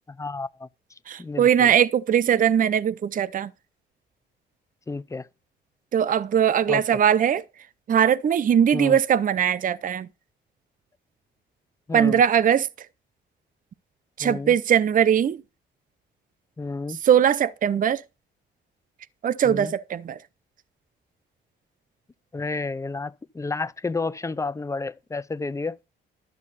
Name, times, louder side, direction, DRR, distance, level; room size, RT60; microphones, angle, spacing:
voice 1, 0.2-0.7 1.2-1.7 4.9-5.3 6.7-7.0 8.7-9.0 11.9-12.2 14.2-14.5 16.6-17.0 19.4-19.7 22.3-25.8, left 3 dB, 15° left, 0.6 m, -31 dB
voice 2, 1.1-3.5 5.9-7.4 7.9-10.1 11.9-12.7 14.2-15.4 17.0-18.0 19.2-20.2, right 9 dB, 45° right, 0.6 m, -20 dB
11.5 x 7.5 x 4.1 m
cardioid pair, 90°, 20 cm